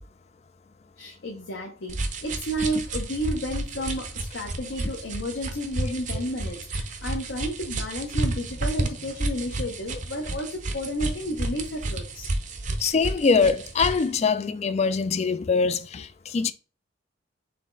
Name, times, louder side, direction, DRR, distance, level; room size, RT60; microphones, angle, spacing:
voice 1, 1.0-2.0 2.2-12.3, equal, 70° left, 0.8 m, -32 dB
sound 1, 1.9-14.1, right 2 dB, 40° right, 0.6 m, -31 dB
voice 2, 12.8-16.5, left 5 dB, 35° left, 0.3 m, -23 dB
4.2 x 3.2 x 3.8 m
head